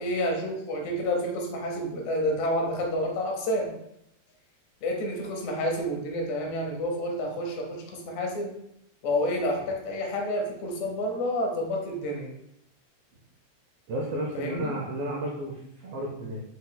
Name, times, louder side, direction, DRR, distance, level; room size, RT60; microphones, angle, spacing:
voice 1, 0.0-3.7 4.8-8.5 9.0-12.3 14.4-14.7, left 1 dB, 75° left, 1 dB, 2.1 m, -29 dB
voice 2, 13.9-16.4, right 1 dB, 85° right, -2 dB, 1.3 m, -32 dB
5.3 x 3.8 x 2.2 m, 0.78 s
omnidirectional pair, 3.4 m